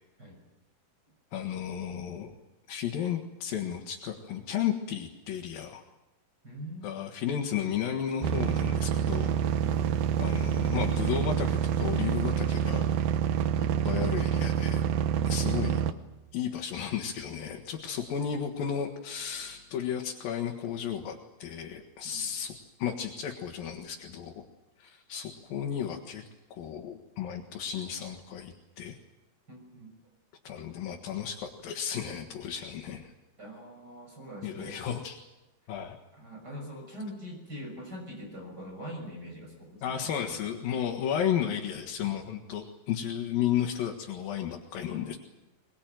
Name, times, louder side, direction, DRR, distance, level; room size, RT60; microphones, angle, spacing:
voice 1, 1.3-2.3 2.7-5.8 6.8-9.4 10.2-12.9 13.6-14.8 15.3-15.8 16.3-22.5 22.8-24.4 24.8-26.2 26.5-29.0 30.4-33.1 34.4-35.2 35.7-36.0 39.8-45.2, left 9 dB, 80° left, 1 dB, 3.4 m, -33 dB
voice 2, 6.4-7.1 9.6-9.8 22.0-22.3 29.5-30.0 33.4-34.9 36.1-40.4, equal, 25° right, 1 dB, 6.8 m, -43 dB
sound 1, 8.2-15.9, right 8 dB, 90° right, 2.8 m, -27 dB
22.5 x 22.5 x 9.2 m, 1.1 s
omnidirectional pair, 4.0 m